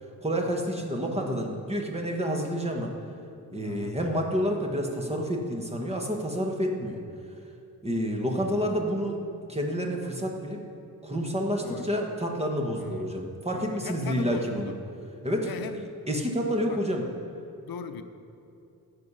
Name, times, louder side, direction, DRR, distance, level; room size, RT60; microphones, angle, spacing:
voice 1, 0.2-2.9 3.5-7.0 7.8-9.2 9.5-10.6 11.0-14.7 15.2-15.5 15.8-17.1, equal, 15° right, 1 dB, 1.2 m, -29 dB
voice 2, 3.6-4.0 11.6-11.9 12.8-13.2 13.5-14.8 15.4-15.8 16.7-16.8 17.6-18.0, left 6 dB, 65° left, 8 dB, 0.7 m, -39 dB
14.5 x 6.5 x 5.6 m, 2.7 s
wide cardioid pair, 145°, 38 cm